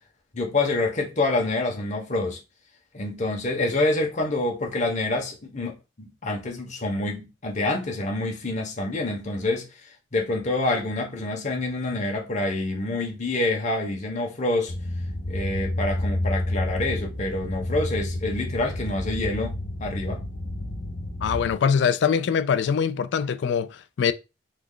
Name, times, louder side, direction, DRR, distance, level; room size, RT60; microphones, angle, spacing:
voice 1, 0.3-2.4 2.9-14.7 15.3-20.2, left 2 dB, 40° left, 0.8 m, -27 dB
sound 1, 14.7-21.5, left 1 dB, 90° left, 0.8 m, -30 dB
voice 2, 21.2-24.1, left 7 dB, 70° left, 0.3 m, -23 dB
3.2 x 2.3 x 3.7 m
head